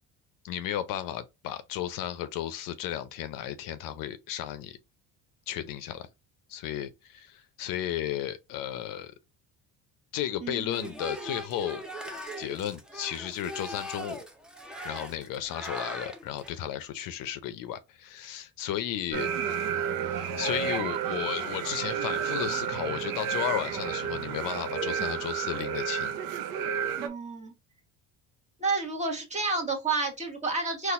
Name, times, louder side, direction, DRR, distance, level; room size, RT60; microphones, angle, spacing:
voice 1, 0.4-4.8 5.5-6.1 6.5-9.1 10.1-11.8 12.4-14.2 14.8-19.3 20.1-26.2, left 11 dB, 65° left, 0.6 m, -34 dB
voice 2, 10.4-10.9 27.0-27.5 28.6-30.9, right 3 dB, 20° right, 1.2 m, -30 dB
sound 1, 10.7-16.5, equal, ahead, 0.6 m, -40 dB
sound 2, 19.1-27.1, right 8 dB, 65° right, 0.7 m, -31 dB
4.0 x 2.5 x 2.4 m
cardioid pair, 120°, 36 cm